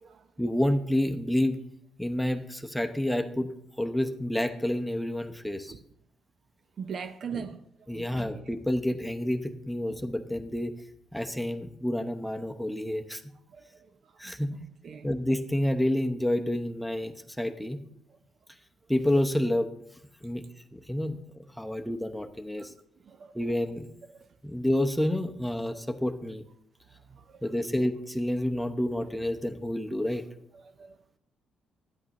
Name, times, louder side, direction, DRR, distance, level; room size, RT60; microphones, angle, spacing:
voice 1, 0.4-1.6 2.0-5.7 7.3-7.4 7.9-10.7 11.1-13.2 14.2-14.5 15.0-17.8 18.9-19.7 20.2-20.4 20.7-22.7 23.3-23.9 24.4-26.4 27.4-30.2, left 1 dB, ahead, 0.8 m, -29 dB
voice 2, 6.8-7.6 7.9-8.4 13.5-13.8 14.2-14.3 14.6-15.1 22.6-22.7 23.1-23.3 24.2-24.3 25.7-25.8 27.1-27.4 30.8-31.0, right 6 dB, 55° right, 0.5 m, -40 dB
12.5 x 8.6 x 2.9 m
cardioid pair, 90°, 0 cm